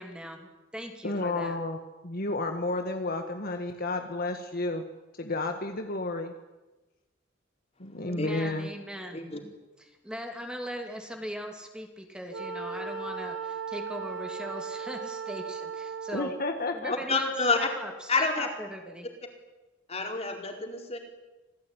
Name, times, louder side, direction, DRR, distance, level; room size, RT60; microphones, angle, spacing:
voice 1, 0.0-1.6 8.0-9.2 9.8-16.3 16.7-19.1, equal, 5° right, 4 dB, 2.8 m, -40 dB
voice 2, 1.0-1.8 2.0-4.8 5.2-6.3 7.8-8.7 16.1-16.9, left 2 dB, 50° left, 5 dB, 1.9 m, -31 dB
Wind instrument woodwind instrument, 12.3-16.5, right 5 dB, 75° right, 3.1 m, -37 dB
voice 3, 17.1-17.6 18.1-18.5 19.9-21.0, left 4 dB, 30° left, 3 dB, 4.8 m, -28 dB
27.0 x 17.5 x 9.9 m, 1.1 s
head